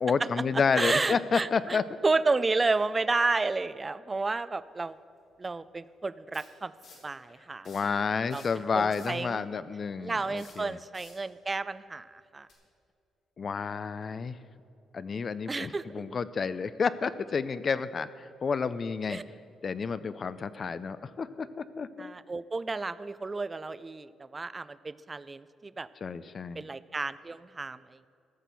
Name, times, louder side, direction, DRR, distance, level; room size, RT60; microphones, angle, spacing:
voice 1, 0.0-1.8 7.7-10.8 13.4-14.4 14.9-19.2 19.6-22.1 26.0-26.6, left 5 dB, 45° left, 15 dB, 0.4 m, -30 dB
voice 2, 0.8-5.0 5.4-6.7 7.0-7.7 8.3-8.4 8.7-9.5 10.0-12.5 15.5-16.2 19.1-19.2 22.0-25.9 26.6-28.1, right 3 dB, 25° right, 16 dB, 0.4 m, -31 dB
sound 1, 4.9-5.0 6.3-7.1 7.5-7.9 8.2-9.3 10.3-11.3 12.4-12.5, left 4 dB, 75° left, 3.0 m, -53 dB
14.0 x 6.0 x 6.9 m, 2.4 s
cardioid pair, 90°, 0 cm